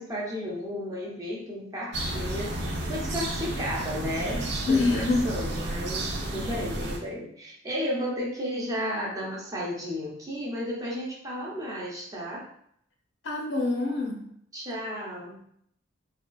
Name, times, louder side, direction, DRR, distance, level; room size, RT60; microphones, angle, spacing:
voice 1, 0.0-12.5 14.5-15.4, equal, 20° right, -4 dB, 0.7 m, -33 dB
sound 1, 1.9-7.0, right 1 dB, 60° right, 0.5 m, -32 dB
voice 2, 4.7-5.2 13.2-14.2, left 3 dB, 70° left, 0 dB, 0.7 m, -25 dB
3.5 x 2.3 x 2.3 m, 0.69 s
head